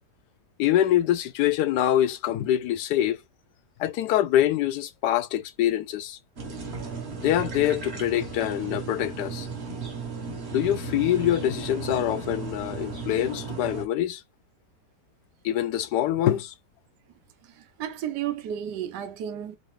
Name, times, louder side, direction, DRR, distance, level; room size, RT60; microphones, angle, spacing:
voice 1, 0.6-3.2 3.8-6.2 7.2-9.5 10.5-14.2 15.4-16.5, left 12 dB, 75° left, 1.1 m, -24 dB
sound 1, 6.4-13.8, right 4 dB, 45° right, 1.2 m, -35 dB
voice 2, 17.4-19.6, right 10 dB, 80° right, 1.2 m, -33 dB
4.1 x 2.6 x 3.1 m
omnidirectional pair, 1.8 m